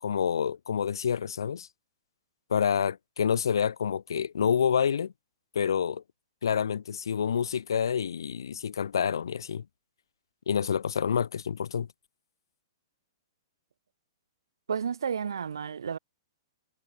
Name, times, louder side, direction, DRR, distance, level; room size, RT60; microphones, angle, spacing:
voice 1, 0.0-1.7 2.5-5.1 5.5-6.0 6.4-9.6 10.5-11.9, left 7 dB, 60° left, 0.4 m, -28 dB
voice 2, 14.7-16.0, right 7 dB, 60° right, 0.7 m, -31 dB
figure-of-eight pair, 110°, 3 cm